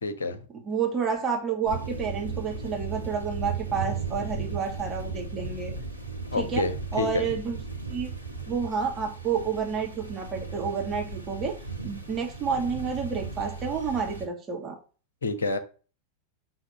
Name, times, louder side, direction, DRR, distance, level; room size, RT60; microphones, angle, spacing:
voice 1, 0.0-0.4 6.3-7.3 15.2-15.6, left 3 dB, 70° left, 7 dB, 1.3 m, -28 dB
voice 2, 0.5-5.7 6.3-6.7 6.9-7.6 7.9-8.1 8.5-11.6 11.8-14.8, right 6 dB, 25° right, 1 dB, 2.4 m, -30 dB
sound 1, 1.6-14.3, right 4 dB, 90° right, 1.5 m, -36 dB
6.4 x 6.1 x 6.6 m, 0.37 s
figure-of-eight pair, 90°, 0 cm